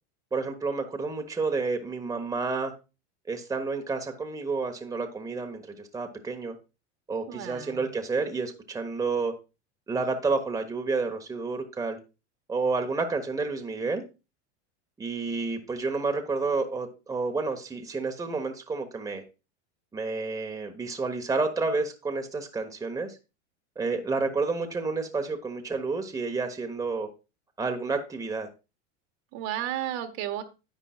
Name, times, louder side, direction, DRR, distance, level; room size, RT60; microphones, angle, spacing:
voice 1, 0.3-2.7 3.3-6.6 7.1-9.3 9.9-12.0 12.5-14.0 15.0-19.2 19.9-23.2 23.8-27.1 27.6-28.5, right 4 dB, 10° right, 1.2 m, -30 dB
voice 2, 7.3-7.8 29.3-30.4, right 12 dB, 55° right, 1.5 m, -33 dB
10.0 x 8.9 x 2.4 m
supercardioid pair, 115°, 35 cm